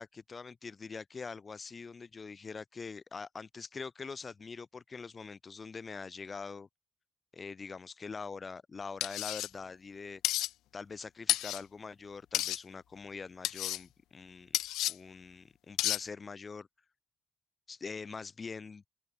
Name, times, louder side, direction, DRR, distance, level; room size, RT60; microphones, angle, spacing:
voice 1, 0.0-6.7 7.3-10.2 10.7-14.5 14.9-16.7 17.7-18.8, left 4 dB, 35° left, 2.1 m, -44 dB
sound 1, 9.0-9.5 10.2-10.5 11.3-11.6 12.3-12.6 13.4-13.8 14.5-14.9 15.8-16.0, left 15 dB, 90° left, 0.6 m, -31 dB
open air
cardioid pair, 90°, 0 cm